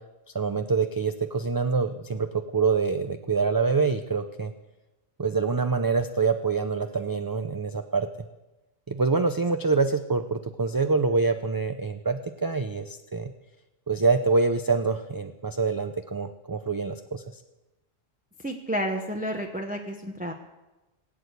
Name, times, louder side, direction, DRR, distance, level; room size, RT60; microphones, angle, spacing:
voice 1, 0.3-2.3 2.5-4.5 5.2-8.1 8.9-13.3 13.9-17.2, right 4 dB, 30° right, 8 dB, 0.4 m, -25 dB
voice 2, 18.4-20.3, equal, 10° right, 2 dB, 1.0 m, -30 dB
18.5 x 8.4 x 8.1 m, 1.1 s
omnidirectional pair, 1.2 m